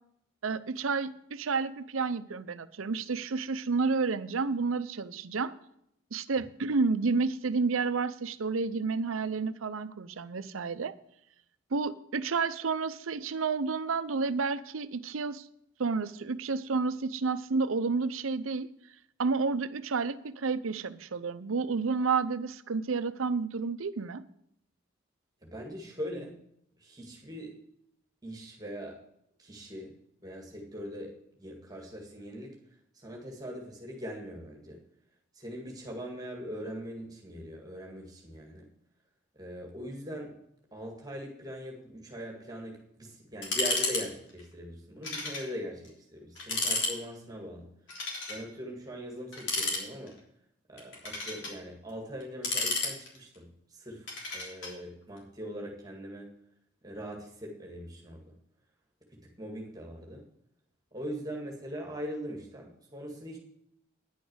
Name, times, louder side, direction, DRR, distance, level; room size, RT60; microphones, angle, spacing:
voice 1, 0.4-5.5 6.1-10.9 11.7-15.5 15.8-18.7 19.2-24.2, right 4 dB, 90° right, 13 dB, 0.6 m, -30 dB
voice 2, 25.4-26.4 26.8-27.5 28.2-29.0 29.4-30.0 30.2-32.6 32.9-34.8 35.3-38.7 39.3-40.3 40.7-47.7 48.3-50.2 50.7-56.3 56.8-58.3 59.1-60.3 60.9-63.4, equal, 20° right, 0 dB, 1.9 m, -41 dB
sound 1, 43.4-44.0 44.3-44.4 45.0-45.5 45.8-45.9 46.4-46.9 47.9-48.4 49.3-50.2 50.8-51.5 52.2-53.3 54.1-54.7, left 3 dB, 70° left, 3.5 m, -32 dB
10.5 x 6.3 x 7.8 m, 0.74 s
head